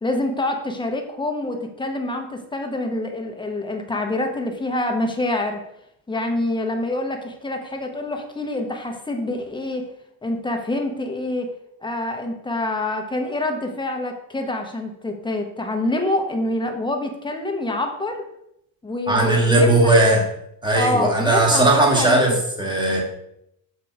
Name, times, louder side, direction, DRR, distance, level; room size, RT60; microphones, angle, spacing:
voice 1, 0.0-5.6 6.1-9.8 10.2-11.5 11.8-18.3 18.8-19.9 20.7-22.4, left 2 dB, 10° left, 3 dB, 1.1 m, -26 dB
voice 2, 19.1-20.2 20.6-23.0, right 2 dB, 10° right, -1 dB, 1.9 m, -17 dB
6.9 x 2.9 x 4.8 m, 0.79 s
supercardioid pair, 85°, 45 cm